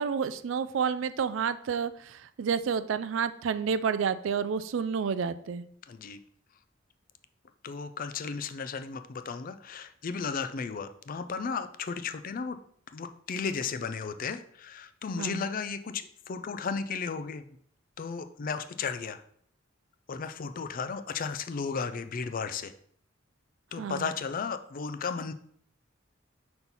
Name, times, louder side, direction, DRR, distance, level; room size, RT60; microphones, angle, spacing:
voice 1, 0.0-5.6 15.2-15.4 23.8-24.0, right 6 dB, 70° right, 14 dB, 0.4 m, -30 dB
voice 2, 5.9-6.2 7.6-12.6 12.9-17.6 18.0-19.2 20.1-22.7 23.7-25.3, left 5 dB, 45° left, 10 dB, 0.4 m, -34 dB
5.5 x 4.4 x 4.0 m, 0.64 s
head